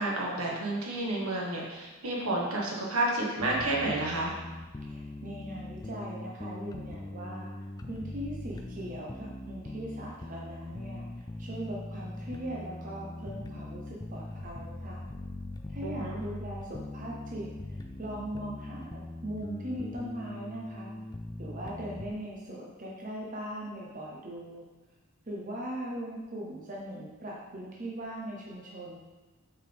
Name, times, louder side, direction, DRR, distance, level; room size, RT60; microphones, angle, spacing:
voice 1, 0.0-4.3 15.8-16.2, right 2 dB, 75° right, -3 dB, 1.5 m, -30 dB
sound 1, 3.4-22.1, left 1 dB, 15° left, 0.3 m, -41 dB
voice 2, 4.9-7.5 7.9-11.1 11.4-15.0 15.7-17.5 18.0-20.9 21.4-24.7 25.3-29.0, right 1 dB, 35° right, -3 dB, 0.8 m, -40 dB
7.3 x 4.8 x 3.5 m, 1.2 s
head